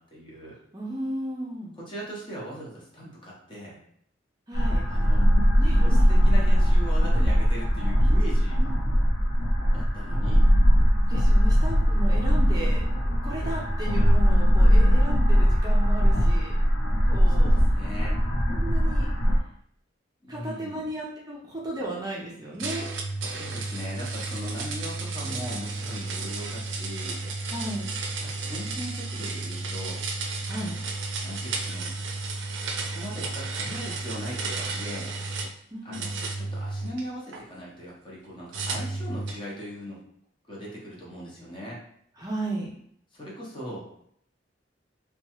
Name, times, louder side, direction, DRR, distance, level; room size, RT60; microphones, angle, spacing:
voice 1, 0.0-0.6 1.9-3.8 4.9-5.2 5.8-8.6 9.7-10.5 17.3-18.2 20.2-20.9 23.3-27.2 28.3-30.0 31.2-31.9 32.7-35.1 35.8-40.0 40.5-41.8 43.1-43.9, equal, 25° left, -4 dB, 0.8 m, -39 dB
voice 2, 0.7-1.7 4.5-4.8 5.6-6.1 8.6-8.7 11.1-16.6 17.0-17.5 18.5-19.1 20.3-22.9 27.5-27.9 30.4-30.7 35.7-36.1 42.2-42.7, right 1 dB, 20° right, -3 dB, 0.5 m, -35 dB
sound 1, 4.5-19.4, equal, 75° left, 0.5 m, -20 dB
sound 2, 22.6-35.6 35.9-37.4 38.5-39.5, right 3 dB, 80° right, 0.4 m, -33 dB
2.9 x 2.3 x 2.9 m, 0.67 s
head